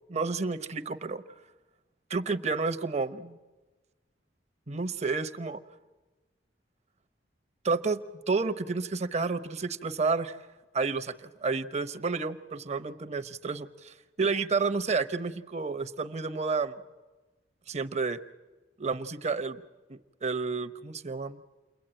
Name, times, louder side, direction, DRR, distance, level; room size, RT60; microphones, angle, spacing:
voice 1, 0.1-1.2 2.1-3.4 4.7-5.6 7.6-8.0 8.3-10.4 10.7-16.8 17.7-18.2 18.8-19.6 19.9-21.4, right 4 dB, 35° right, 11 dB, 0.8 m, -30 dB
29.0 x 22.0 x 8.9 m, 1.2 s
head